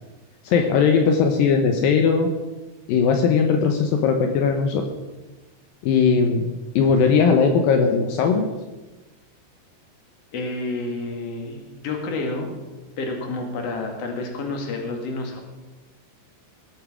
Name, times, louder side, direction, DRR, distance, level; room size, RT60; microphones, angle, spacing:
voice 1, 0.4-2.3 2.9-4.8 5.8-6.5 6.8-8.4, left 5 dB, 80° left, 4 dB, 2.0 m, -19 dB
voice 2, 10.3-12.6 13.0-15.4, left 2 dB, 45° left, 2 dB, 2.3 m, -29 dB
19.5 x 8.3 x 5.0 m, 1.1 s
omnidirectional pair, 5.4 m